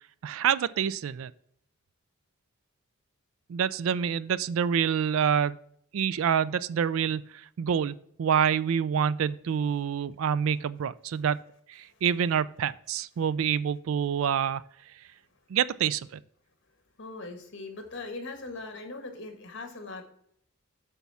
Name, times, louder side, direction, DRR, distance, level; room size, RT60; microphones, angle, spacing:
voice 1, 0.2-1.3 3.5-5.6 5.9-7.9 8.2-11.4 11.7-14.6 15.5-16.2, right 8 dB, 70° right, 18 dB, 0.3 m, -27 dB
voice 2, 17.0-20.0, left 3 dB, 60° left, 5 dB, 1.5 m, -40 dB
8.3 x 3.6 x 5.5 m, 0.67 s
head